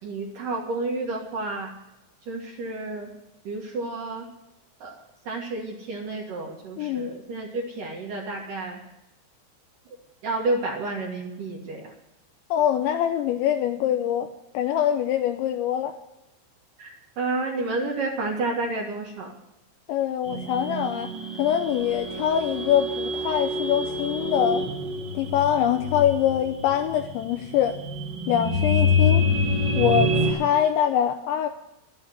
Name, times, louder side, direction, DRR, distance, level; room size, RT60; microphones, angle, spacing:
voice 1, 0.0-1.7 2.3-3.1 3.4-4.3 4.8-5.0 5.2-8.8 10.2-11.9 16.8-19.3, right 2 dB, 55° right, -1 dB, 2.6 m, -30 dB
voice 2, 6.8-7.1 12.5-14.3 14.5-16.0 19.9-21.1 21.4-24.6 25.1-27.8 28.3-29.2 29.7-31.5, left 10 dB, 80° left, 6 dB, 2.7 m, -24 dB
sound 1, 20.2-30.3, left 2 dB, 35° right, 2.8 m, -26 dB
12.0 x 9.0 x 9.5 m, 0.91 s
omnidirectional pair, 5.9 m